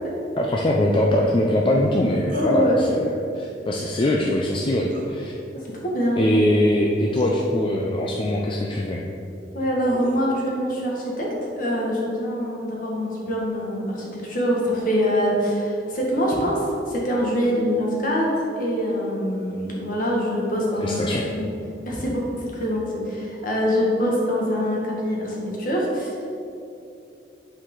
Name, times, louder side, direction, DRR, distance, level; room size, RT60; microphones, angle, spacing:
voice 1, 0.4-2.9 3.4-5.3 6.2-9.0 20.8-21.2, left 1 dB, 30° left, -1 dB, 0.4 m, -22 dB
voice 2, 2.3-2.8 5.5-6.2 9.5-21.0 21.3-21.5 21.8-26.1, equal, 50° left, -3 dB, 1.6 m, -24 dB
sound 1, 2.3-2.6 4.9-5.2 6.5-6.6 7.1-7.4 9.4-10.3, right 2 dB, 50° right, 0.8 m, -40 dB
8.7 x 4.7 x 3.8 m, 2.7 s
head